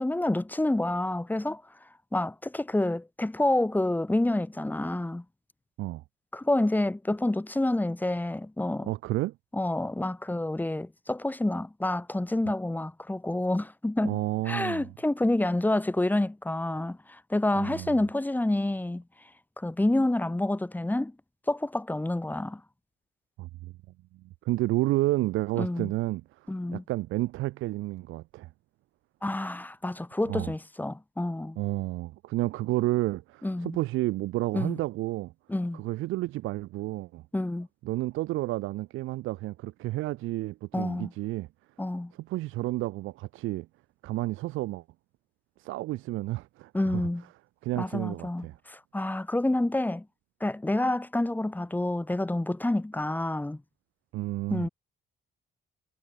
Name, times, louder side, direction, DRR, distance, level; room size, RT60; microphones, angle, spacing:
voice 1, 0.0-1.6 2.1-5.2 6.3-8.9 9.5-19.0 19.6-21.1 21.5-22.6 25.6-25.9 26.5-26.8 29.2-31.6 33.4-33.8 34.5-34.8 35.5-35.8 37.3-37.7 40.7-41.1 41.8-42.1 46.7-47.2 47.8-50.0 50.4-53.6 54.5-54.7, left 1 dB, 10° left, 1.2 m, -28 dB
voice 2, 8.8-9.3 14.0-14.9 17.6-18.0 23.4-23.7 24.5-26.2 26.7-28.5 30.3-30.5 31.6-35.3 35.7-37.2 37.8-41.5 42.2-43.7 44.0-44.8 45.6-47.0 47.6-48.6 54.1-54.7, right 18 dB, 90° right, 0.6 m, -31 dB
cardioid pair, 90°, 20 cm